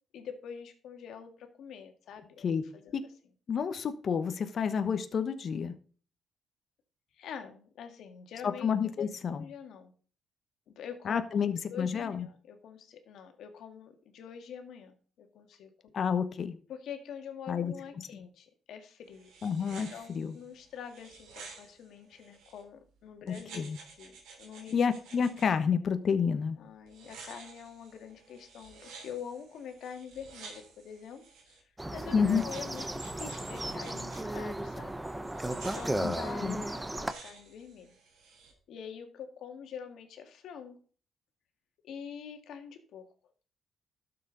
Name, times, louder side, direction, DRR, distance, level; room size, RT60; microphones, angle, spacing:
voice 1, 0.1-2.5 2.7-2.9 7.1-8.7 9.0-9.9 10.7-11.4 11.7-15.9 16.7-19.3 19.9-24.7 26.6-31.6 31.9-35.0 35.6-36.4 36.7-38.0 38.7-40.8 41.8-43.0, left 7 dB, 75° left, 6 dB, 1.8 m, -45 dB
voice 2, 3.5-5.7 8.4-9.4 11.0-12.3 15.9-16.6 17.5-18.3 19.4-20.4 23.3-23.8 24.7-26.6 32.1-32.4 36.0-36.1 36.4-36.6, left 6 dB, 55° left, 10 dB, 1.1 m, -30 dB
sound 1, 19.0-22.6 23.3-25.5 26.9-31.6 32.3-34.2 35.3-38.5, right 4 dB, 90° right, 3.2 m, -52 dB
sound 2, 31.8-37.1, right 1 dB, 10° right, 0.8 m, -35 dB
12.5 x 6.9 x 3.9 m, 0.41 s
cardioid pair, 90°, 0 cm